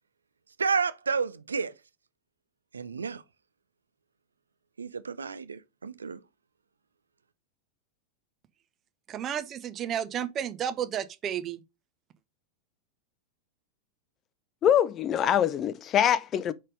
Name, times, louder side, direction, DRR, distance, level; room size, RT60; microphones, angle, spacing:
voice 1, 0.6-1.7 2.7-3.2 4.8-6.2, right 5 dB, 75° right, 0.5 m, -30 dB
voice 2, 9.1-11.6, right 9 dB, 30° right, 0.8 m, -32 dB
voice 3, 14.6-16.5, left 9 dB, 30° left, 0.5 m, -24 dB
5.1 x 4.1 x 5.2 m
figure-of-eight pair, 90°, 0 cm